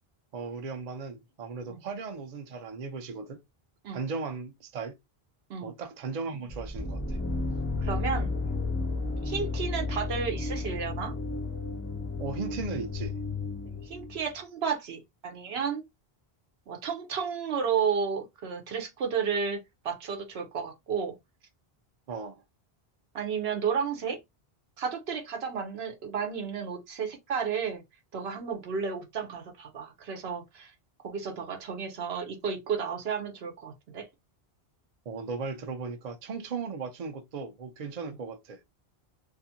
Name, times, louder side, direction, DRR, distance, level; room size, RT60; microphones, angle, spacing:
voice 1, 0.3-3.4 3.9-5.0 5.6-7.2 12.2-13.1 22.1-22.4 35.1-38.6, right 4 dB, 50° right, 0.6 m, -37 dB
sound 1, 6.5-14.3, left 3 dB, 25° left, 0.3 m, -33 dB
voice 2, 7.8-8.3 9.2-11.1 13.6-15.8 16.7-21.1 23.1-24.2 24.8-27.8 28.1-30.7 31.0-34.1, right 6 dB, 85° right, 1.0 m, -32 dB
2.5 x 2.5 x 2.7 m
omnidirectional pair, 1.0 m